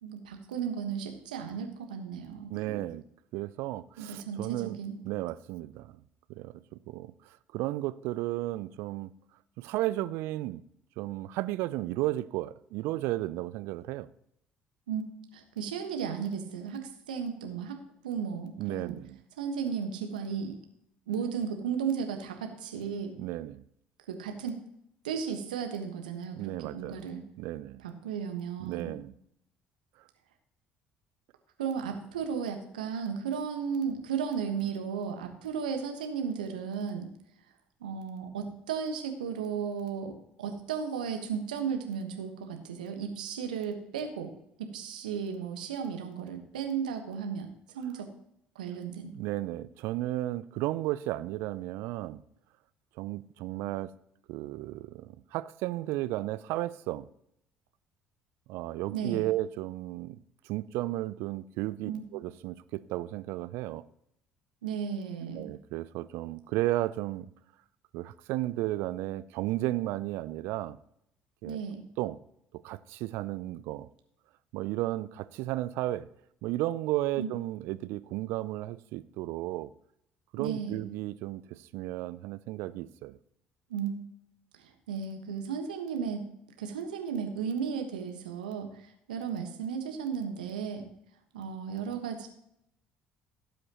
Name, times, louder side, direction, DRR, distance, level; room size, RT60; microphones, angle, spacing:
voice 1, 0.0-2.8 4.0-5.0 14.9-15.0 15.3-19.0 19.4-20.6 21.1-23.2 24.1-24.5 25.0-27.2 27.8-28.9 31.6-37.1 37.8-48.1 48.5-49.1 58.9-59.3 61.8-62.0 64.6-65.5 71.4-71.8 77.2-77.3 80.4-80.8 83.7-84.0 84.6-86.2 86.6-90.8 91.3-92.3, right 7 dB, 80° right, 1.4 m, -35 dB
voice 2, 2.5-3.0 3.3-4.8 5.0-6.0 6.4-9.1 9.6-10.6 11.0-14.1 18.6-19.2 23.2-23.6 26.4-27.0 27.4-27.8 28.6-29.1 49.1-52.2 53.0-53.9 54.3-57.1 58.5-60.2 60.4-63.8 65.3-67.3 67.9-70.8 71.4-71.6 72.0-72.2 72.6-73.9 74.5-76.1 76.4-79.7 80.3-83.2, right 16 dB, 65° right, 0.4 m, -34 dB
17.5 x 7.8 x 3.0 m
hypercardioid pair, 55°, 4 cm